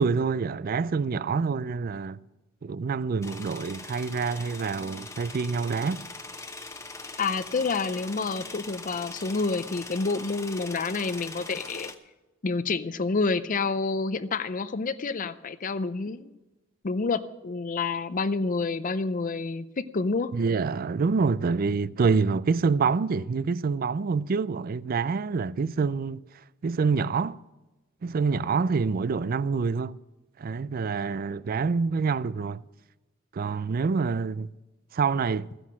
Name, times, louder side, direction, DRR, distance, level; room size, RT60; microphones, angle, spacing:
voice 1, 0.0-2.2 2.6-6.0 20.3-26.2 26.6-27.4 28.0-30.0 30.4-32.6 33.3-34.5 34.9-35.5, right 5 dB, 45° right, 0.4 m, -26 dB
sound 1, 3.2-11.9, left 3 dB, 15° left, 1.0 m, -41 dB
voice 2, 7.2-11.9 12.4-16.3 16.8-20.3, left 4 dB, 40° left, 0.5 m, -28 dB
14.5 x 10.0 x 6.1 m
head